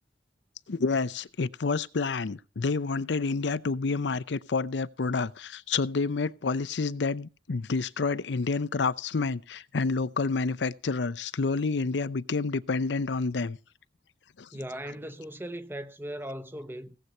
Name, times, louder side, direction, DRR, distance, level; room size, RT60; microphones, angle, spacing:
voice 1, 0.7-13.6 14.4-14.5, left 4 dB, 85° left, 0.6 m, -29 dB
voice 2, 14.5-17.0, right 1 dB, 10° right, 0.8 m, -38 dB
17.5 x 7.9 x 4.4 m
head